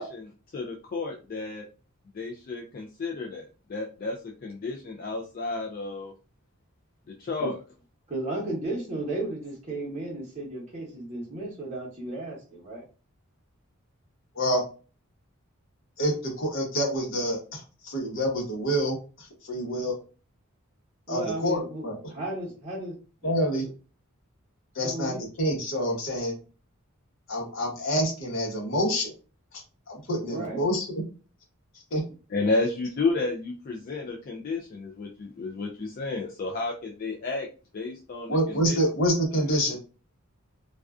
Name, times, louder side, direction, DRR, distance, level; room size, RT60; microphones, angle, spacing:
voice 1, 0.0-1.7 2.1-6.1 7.1-7.6 32.3-37.5 37.7-38.8, left 3 dB, 40° left, 0 dB, 0.3 m, -32 dB
voice 2, 8.1-12.8 21.1-22.9 23.2-23.3 24.8-25.2 30.2-30.6, right 2 dB, 30° right, -5 dB, 0.9 m, -34 dB
voice 3, 16.0-19.9 21.1-22.0 23.2-23.6 24.7-26.3 27.3-29.1 29.9-30.9 31.9-32.0 38.3-39.8, equal, 60° left, -1 dB, 0.9 m, -27 dB
2.4 x 2.3 x 2.3 m, 0.35 s
head